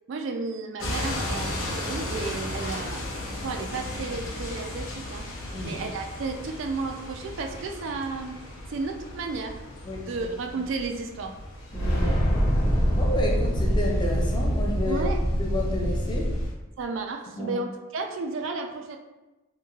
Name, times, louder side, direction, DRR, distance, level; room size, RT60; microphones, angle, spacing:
voice 1, 0.1-3.1 3.4-5.3 5.6-8.4 8.7-9.6 9.9-11.4 14.9-15.2 16.8-19.0, right 3 dB, 60° right, 4 dB, 0.3 m, -33 dB
sound 1, 0.8-16.5, left 1 dB, 65° left, 0.6 m, -37 dB
sound 2, 11.7-16.4, equal, 45° left, 1.1 m, -24 dB
voice 2, 11.7-12.2 12.9-15.1 15.3-16.3 17.4-17.6, left 1 dB, 20° left, -1 dB, 0.4 m, -31 dB
3.6 x 3.0 x 2.3 m, 1.1 s
head